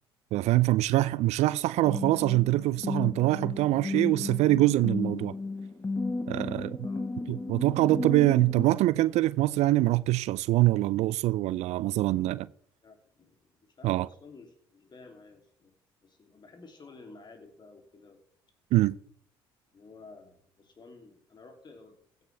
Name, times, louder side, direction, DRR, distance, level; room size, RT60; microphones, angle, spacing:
voice 1, 0.3-5.3 6.3-6.8 7.3-12.5 13.8-14.1 18.7-19.0, right 16 dB, 65° right, 0.5 m, -24 dB
sound 1, 1.8-8.7, left 3 dB, 20° left, 1.5 m, -34 dB
voice 2, 12.8-15.7 16.0-18.2 19.7-22.3, left 3 dB, 35° left, 3.1 m, -52 dB
16.0 x 9.2 x 3.5 m
hypercardioid pair, 55°, 12 cm